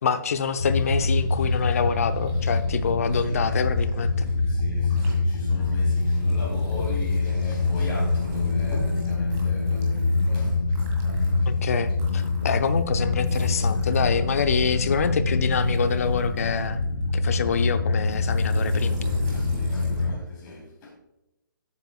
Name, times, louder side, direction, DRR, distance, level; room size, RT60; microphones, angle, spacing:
voice 1, 0.0-4.3 11.5-16.8 17.1-19.0, left 6 dB, 45° left, 0.6 m, -26 dB
sound 1, 0.6-20.2, left 3 dB, 65° left, 1.6 m, -25 dB
sound 2, 0.6-4.4 4.7-5.2 5.6-15.1 15.6-17.5 18.0-20.1, right 1 dB, 20° right, 2.0 m, -42 dB
voice 2, 3.3-3.6 4.2-10.8 11.2-11.6 19.2-20.9, left 2 dB, 20° left, 3.3 m, -39 dB
11.5 x 8.3 x 2.4 m
figure-of-eight pair, 140°, 11 cm